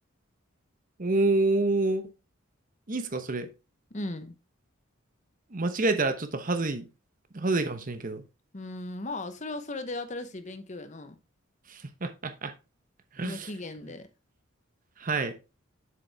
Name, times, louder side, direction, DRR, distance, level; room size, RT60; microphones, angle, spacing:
voice 1, 1.0-2.0 2.9-3.5 5.5-6.8 7.3-8.2 11.7-12.5 13.2-13.5 15.0-15.3, right 2 dB, 40° right, 0.9 m, -27 dB
voice 2, 3.9-4.3 8.5-11.1 13.2-14.1, left 2 dB, 35° left, 0.9 m, -37 dB
7.6 x 6.7 x 3.5 m
head